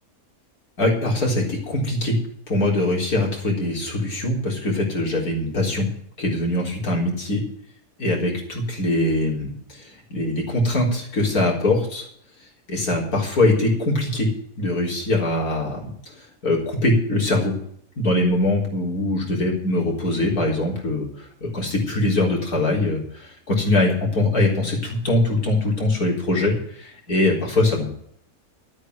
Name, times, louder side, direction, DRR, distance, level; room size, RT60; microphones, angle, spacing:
voice 1, 0.8-2.2 2.5-5.9 6.2-7.4 8.0-12.1 12.7-14.3 14.6-15.9 16.4-17.5 18.0-21.1 21.4-27.9, left 2 dB, 70° left, -1 dB, 4.4 m, -22 dB
12.0 x 8.9 x 8.0 m, 0.66 s
omnidirectional pair, 1.6 m